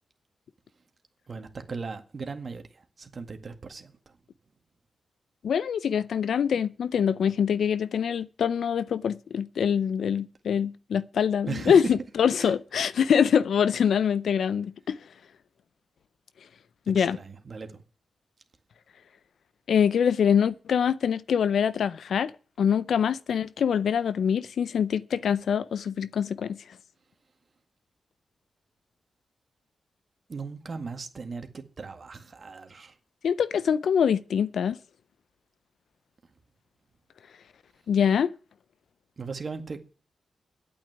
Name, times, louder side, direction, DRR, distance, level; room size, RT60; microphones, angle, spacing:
voice 1, 1.3-4.1 11.5-11.9 12.4-12.5 17.0-17.7 30.3-33.0 39.2-39.8, right 4 dB, 50° right, 1.9 m, -37 dB
voice 2, 5.4-15.0 16.9-17.2 19.7-22.3 22.6-26.6 33.2-34.8 37.9-38.3, left 7 dB, 80° left, 0.6 m, -24 dB
8.9 x 8.6 x 9.4 m
cardioid pair, 75°, 0 cm